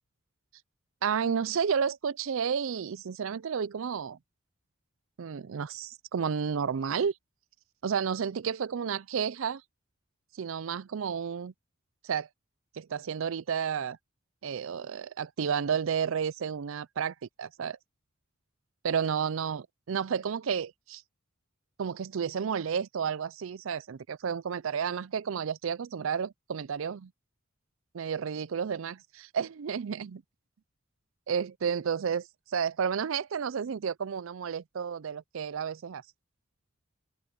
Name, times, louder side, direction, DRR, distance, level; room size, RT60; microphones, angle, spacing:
voice 1, 1.0-4.2 5.2-7.1 7.8-9.6 10.3-11.5 12.0-12.3 12.7-14.0 14.4-17.8 18.8-21.0 21.8-27.1 27.9-30.2 31.3-36.0, right 7 dB, 70° right, 0.4 m, -31 dB
head